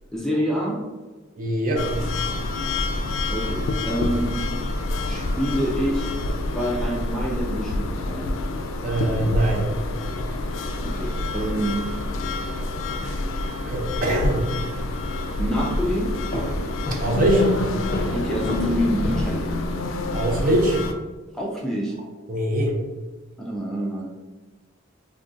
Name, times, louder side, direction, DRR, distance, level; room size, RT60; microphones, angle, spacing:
voice 1, 0.1-0.8 3.3-4.4 5.1-6.2 6.5-8.3 10.8-11.8 15.4-16.1 18.1-19.5 21.3-21.9 23.4-24.1, equal, 5° left, -3 dB, 0.4 m, -27 dB
voice 2, 1.4-1.8 8.8-9.6 13.6-14.5 17.0-17.5 20.1-20.8 22.3-22.7, right 1 dB, 45° right, -1 dB, 0.6 m, -22 dB
sound 1, 1.8-20.9, left 2 dB, 80° left, 0.3 m, -27 dB
sound 2, 16.3-20.0, equal, 45° left, 0.6 m, -32 dB
2.5 x 2.3 x 3.6 m, 1.2 s
head